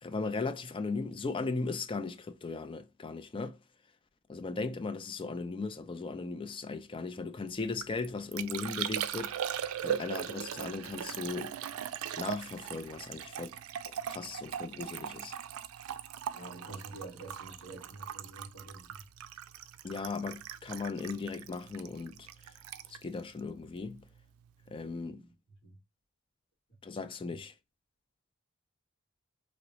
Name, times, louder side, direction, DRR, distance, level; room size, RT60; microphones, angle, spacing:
voice 1, 0.0-3.6 4.3-11.6 12.2-13.6 13.9-15.3 19.8-22.3 22.9-24.0 24.7-25.2 26.8-27.5, left 4 dB, 25° left, 0.3 m, -37 dB
Liquid, 7.6-24.2 24.5-25.0, right 9 dB, 90° right, 0.4 m, -40 dB
voice 2, 16.3-19.0 25.0-25.3 25.6-25.7 27.3-27.4, right 2 dB, 55° left, 1.6 m, -47 dB
3.1 x 3.0 x 2.6 m
head